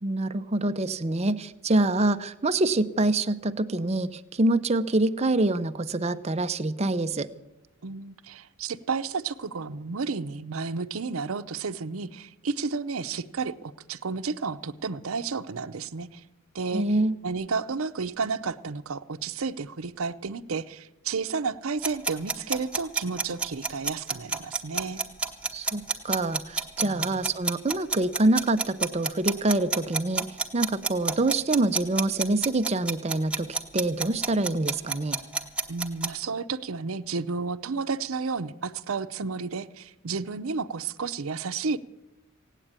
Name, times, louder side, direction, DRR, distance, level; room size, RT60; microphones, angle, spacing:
voice 1, 0.0-7.3 16.7-17.2 25.5-30.3 30.5-35.2, right 2 dB, 30° right, 10 dB, 0.6 m, -26 dB
voice 2, 7.8-16.2 16.5-16.9 17.2-25.0 26.8-27.2 35.7-41.8, right 4 dB, 80° right, 13 dB, 0.7 m, -32 dB
sound 1, 21.8-36.1, right 4 dB, 5° right, 1.0 m, -28 dB
17.0 x 9.1 x 8.8 m, 0.95 s
head